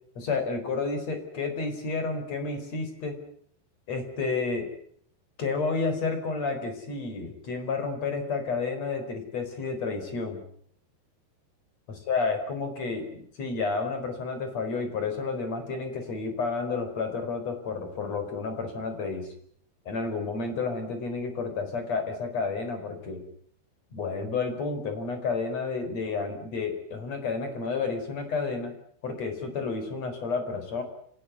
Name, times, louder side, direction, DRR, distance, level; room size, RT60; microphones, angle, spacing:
voice 1, 0.2-3.2 3.9-4.7 5.4-10.4 12.1-19.3 19.9-23.2 23.9-28.7 29.0-30.8, left 4 dB, 35° left, 8 dB, 5.2 m, -31 dB
29.0 x 17.0 x 9.5 m, 0.67 s
omnidirectional pair, 5.5 m